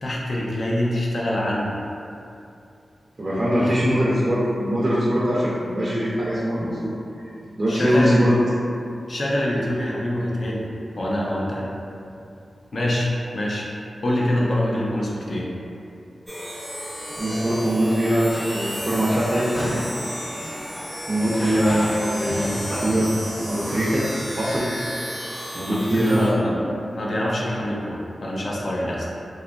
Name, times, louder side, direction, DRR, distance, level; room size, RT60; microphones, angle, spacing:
voice 1, 0.0-1.8 3.5-3.7 7.7-8.2 9.1-10.7 10.9-11.7 12.7-13.7 14.0-15.5 21.1-21.3 25.7-29.1, left 1 dB, 60° left, -4 dB, 0.5 m, -25 dB
voice 2, 3.2-6.9 7.6-8.3 17.2-19.5 21.1-23.1 23.5-24.1 24.4-24.7 25.5-26.6, equal, 45° right, -8 dB, 0.5 m, -22 dB
sound 1, 16.3-26.3, equal, ahead, 0.6 m, -34 dB
sound 2, 18.3-24.0, equal, 35° left, 1.0 m, -34 dB
2.8 x 2.4 x 2.3 m, 2.6 s
wide cardioid pair, 80°, 0 cm